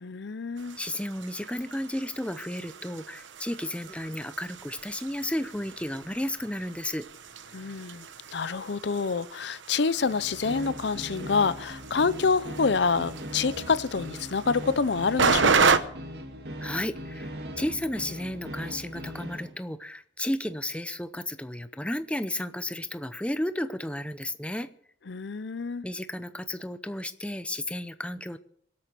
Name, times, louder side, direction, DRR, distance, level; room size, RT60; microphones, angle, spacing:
voice 1, 0.0-0.8 7.5-15.8 25.1-25.8, left 5 dB, 60° left, 17 dB, 0.6 m, -27 dB
sound 1, 0.6-15.8, right 5 dB, 70° right, 1.0 m, -32 dB
voice 2, 0.8-7.1 16.6-24.7 25.8-28.4, left 1 dB, 5° left, 11 dB, 0.6 m, -33 dB
sound 2, 10.0-19.5, equal, 55° right, 2.4 m, -40 dB
24.0 x 8.6 x 6.8 m, 0.67 s
head